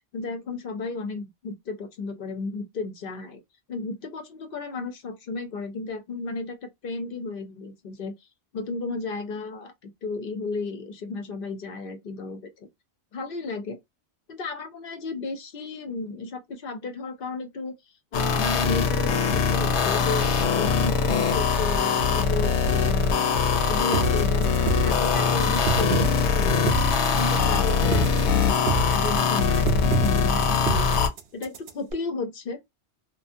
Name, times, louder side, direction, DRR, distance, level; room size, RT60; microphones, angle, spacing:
voice 1, 0.1-3.4 3.7-8.1 8.5-12.7 13.1-13.8 14.3-17.8 18.1-23.2 23.7-26.7 27.2-30.9 31.3-32.6, left 3 dB, 60° left, 0.8 m, -33 dB
sound 1, 18.1-31.1, left 5 dB, 80° left, 0.9 m, -22 dB
sound 2, 23.9-31.9, right 6 dB, 70° right, 0.8 m, -28 dB
2.5 x 2.4 x 2.5 m
omnidirectional pair, 1.1 m